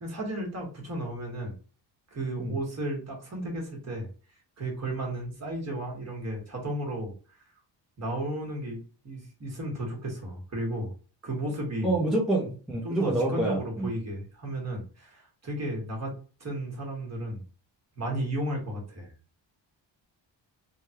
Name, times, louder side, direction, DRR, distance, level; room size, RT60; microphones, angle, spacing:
voice 1, 0.0-1.5 2.1-4.1 4.6-7.1 8.0-8.8 9.0-10.9 11.2-12.0 12.8-16.1 16.4-17.4 18.0-19.1, right 1 dB, 35° right, 0 dB, 1.2 m, -34 dB
voice 2, 11.8-13.9, right 2 dB, ahead, -3 dB, 0.6 m, -27 dB
3.4 x 2.2 x 2.8 m, 0.38 s
wide cardioid pair, 120°, 46 cm